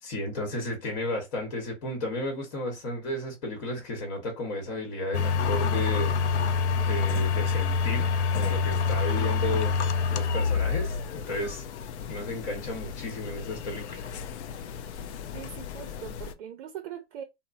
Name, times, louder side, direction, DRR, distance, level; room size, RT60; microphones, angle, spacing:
voice 1, 0.0-6.2 6.7-9.8 10.1-11.6 12.1-14.1, left 1 dB, 45° left, 1.1 m, -33 dB
sound 1, 5.1-16.3, left 5 dB, 65° left, 0.5 m, -28 dB
voice 2, 15.3-17.2, right 9 dB, 55° right, 0.5 m, -41 dB
2.9 x 2.1 x 2.5 m
hypercardioid pair, 130°, 37 cm